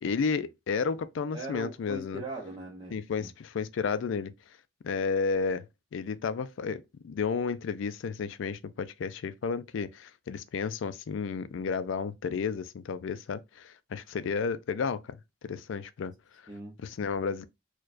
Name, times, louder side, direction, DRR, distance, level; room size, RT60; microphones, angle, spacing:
voice 1, 0.0-2.2 2.9-4.3 4.8-5.7 5.9-16.1 16.8-17.5, left 5 dB, 70° left, 0.3 m, -32 dB
voice 2, 1.3-3.3 16.5-16.8, right 2 dB, 20° right, 0.6 m, -40 dB
4.5 x 2.2 x 2.4 m
head